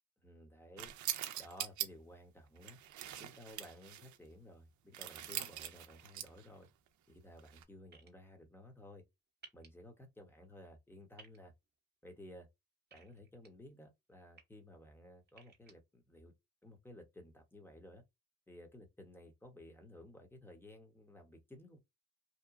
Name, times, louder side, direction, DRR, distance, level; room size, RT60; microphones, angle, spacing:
voice 1, 0.2-0.9 1.4-2.8 3.2-6.7 7.1-9.0 9.5-11.5 12.0-12.5 12.9-16.3 16.6-18.0 18.5-21.8, left 1 dB, 5° left, 1.0 m, -55 dB
sound 1, 0.8-1.9 2.6-4.2 4.9-6.5 7.4-7.6, right 11 dB, 75° right, 0.5 m, -42 dB
sound 2, 7.9-8.1 9.4-9.7 11.2-11.4 12.9-13.5 14.1-14.4 15.3-15.7, right 5 dB, 35° right, 0.8 m, -57 dB
2.9 x 2.2 x 2.4 m
cardioid pair, 90°, 30 cm